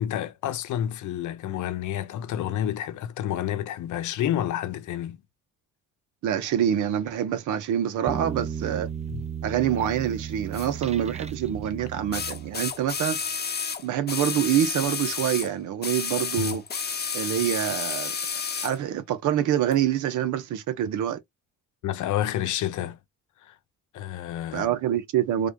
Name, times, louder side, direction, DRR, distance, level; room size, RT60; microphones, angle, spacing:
voice 1, 0.0-5.2 9.1-9.2 16.4-16.6 21.8-23.0 23.4-23.6 23.9-24.7, left 11 dB, 75° left, 0.8 m, -29 dB
voice 2, 6.2-8.9 9.4-13.2 13.8-16.6 17.1-21.2 24.5-25.5, right 10 dB, 85° right, 0.9 m, -26 dB
sound 1, 8.1-13.0, right 7 dB, 20° right, 0.5 m, -35 dB
sound 2, 10.5-10.7 12.1-15.5 15.8-18.8 19.7-19.8, left 6 dB, 35° left, 0.9 m, -31 dB
3.5 x 2.2 x 3.5 m
cardioid pair, 90°, 30 cm